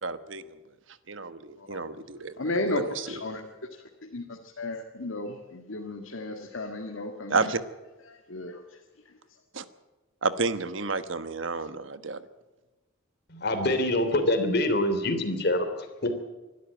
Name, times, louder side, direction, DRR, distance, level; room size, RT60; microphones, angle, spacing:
voice 1, 0.0-0.4 1.1-2.3 2.7-3.1 7.3-7.6 9.5-9.6 10.2-12.2, right 4 dB, 70° right, 12 dB, 1.2 m, -30 dB
voice 2, 2.4-3.4 4.1-7.5 8.1-8.8, left 2 dB, 85° left, 2 dB, 1.9 m, -34 dB
voice 3, 13.3-16.1, left 1 dB, 55° left, 7 dB, 3.1 m, -25 dB
24.0 x 12.5 x 9.0 m, 1.1 s
head